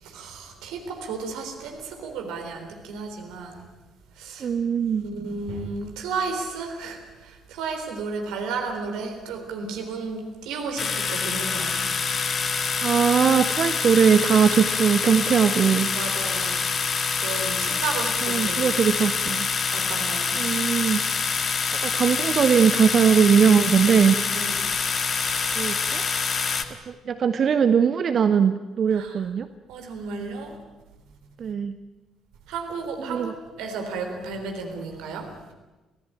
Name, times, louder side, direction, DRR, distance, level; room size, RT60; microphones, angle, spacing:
voice 1, 0.0-3.7 4.2-4.5 5.0-11.9 15.9-16.6 17.2-18.7 19.7-20.4 24.3-24.6 28.9-29.2 29.7-30.5 32.5-35.3, right 4 dB, 65° right, 4 dB, 3.8 m, -33 dB
voice 2, 4.4-5.0 12.8-15.9 18.2-19.5 20.3-21.0 21.7-24.2 25.5-26.0 26.9-29.5 31.4-31.8 33.0-33.3, right 7 dB, 45° right, 11 dB, 0.9 m, -20 dB
sound 1, 10.8-26.6, left 5 dB, 40° left, 1.7 m, -26 dB
25.0 x 17.0 x 8.9 m, 1.1 s
figure-of-eight pair, 45°, 0 cm